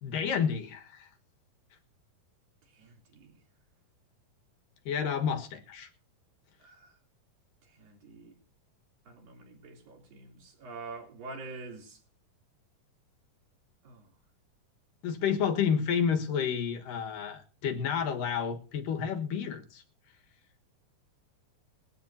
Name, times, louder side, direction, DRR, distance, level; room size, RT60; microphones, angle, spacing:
voice 1, 0.0-1.1 4.9-5.9 15.0-19.8, left 7 dB, 75° left, 3.1 m, -30 dB
voice 2, 2.7-3.4 6.6-7.0 7.6-8.3 9.1-12.0 13.8-14.1, right 3 dB, 90° right, 5.2 m, -46 dB
21.0 x 15.0 x 2.8 m
omnidirectional pair, 3.9 m